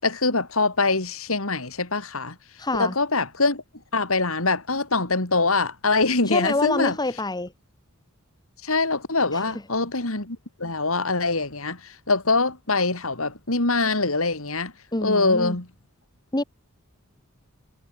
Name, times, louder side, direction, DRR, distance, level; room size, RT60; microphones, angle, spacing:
voice 1, 0.0-2.4 2.7-3.6 3.9-7.0 8.6-14.7 15.0-15.7, left 3 dB, 65° left, 3.5 m, -24 dB
voice 2, 2.6-2.9 6.3-7.5 9.3-9.4 14.9-15.6 16.3-16.4, left 2 dB, 20° left, 1.7 m, -26 dB
head